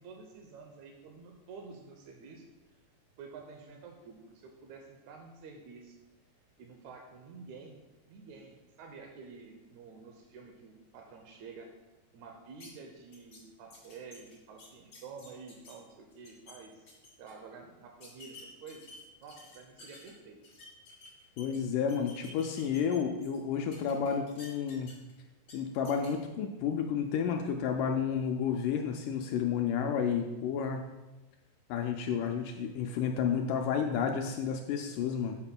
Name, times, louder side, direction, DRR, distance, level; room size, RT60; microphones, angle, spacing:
voice 1, 0.0-2.4 3.2-6.0 6.6-7.8 8.1-11.7 12.1-16.9 17.2-18.9 19.2-20.4, right 4 dB, 75° right, 3 dB, 1.7 m, -49 dB
sound 1, 12.6-12.7 13.1-13.4 13.7-15.7 16.1-16.5 16.9-17.3 18.0-20.1 20.4-21.6 21.9-23.4 23.7-25.1 25.4-25.5 25.8-26.1, left 3 dB, 40° left, 2.2 m, -52 dB
voice 2, 21.4-24.9 25.5-30.9 31.7-35.4, left 7 dB, 80° left, 4 dB, 1.9 m, -31 dB
9.7 x 7.8 x 2.2 m, 1.1 s
omnidirectional pair, 4.0 m